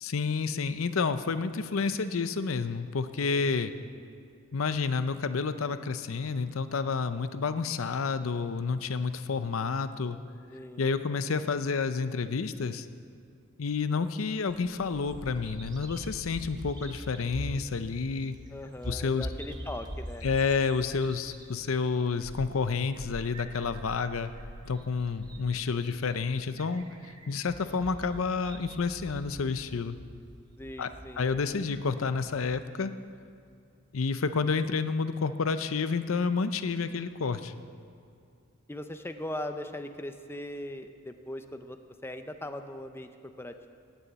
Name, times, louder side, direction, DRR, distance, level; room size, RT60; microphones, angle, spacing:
voice 1, 0.0-3.7 4.5-10.2 10.8-12.9 13.6-18.4 18.9-19.3 20.2-24.3 24.7-26.8 27.3-30.0 30.8-30.9 31.2-32.9 33.9-37.5, left 4 dB, 80° left, 11 dB, 0.6 m, -29 dB
voice 2, 10.5-10.9 18.5-20.3 25.8-26.4 30.6-31.3 38.7-43.1 43.4-43.7, left 1 dB, 10° left, 7 dB, 0.6 m, -40 dB
Bird vocalization bird call bird song, 14.5-32.6, equal, 20° right, 1.1 m, -44 dB
18.0 x 7.0 x 8.1 m, 2.4 s
head